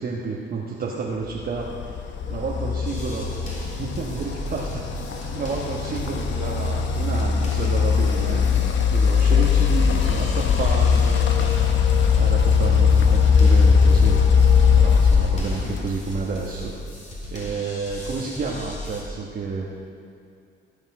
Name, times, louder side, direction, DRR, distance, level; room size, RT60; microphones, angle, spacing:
voice 1, 0.0-2.0 2.3-3.3 3.8-8.4 8.9-11.3 12.1-14.2 14.7-16.7 17.3-19.7, right 4 dB, 50° right, -3 dB, 1.4 m, -30 dB
sound 1, 1.6-16.0, left 6 dB, 65° left, 1.1 m, -19 dB
sound 2, 2.8-19.0, right 1 dB, 35° left, 3.6 m, -36 dB
17.0 x 7.3 x 6.1 m, 2.4 s
cardioid pair, 90°, 20 cm